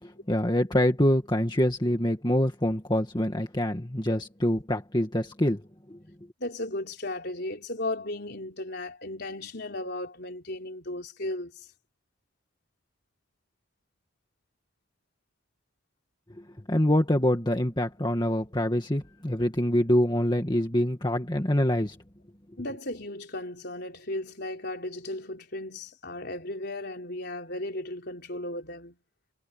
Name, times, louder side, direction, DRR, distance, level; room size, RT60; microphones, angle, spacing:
voice 1, 0.0-5.6 5.9-6.0 16.7-22.0, left 1 dB, 20° left, 2.0 m, -25 dB
voice 2, 6.4-11.7 22.6-29.0, left 1 dB, 50° left, 4.2 m, -35 dB
head